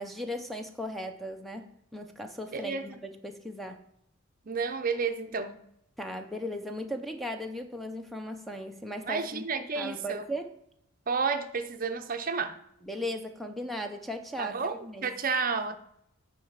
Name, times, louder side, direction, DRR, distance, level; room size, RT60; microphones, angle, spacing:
voice 1, 0.0-3.0 3.2-3.8 6.0-10.5 12.8-15.1, equal, ahead, 0.6 m, -37 dB
voice 2, 2.5-2.8 4.5-5.5 9.1-10.3 11.1-12.6 14.4-15.8, right 5 dB, 40° right, 0.6 m, -31 dB
9.3 x 4.7 x 5.8 m
head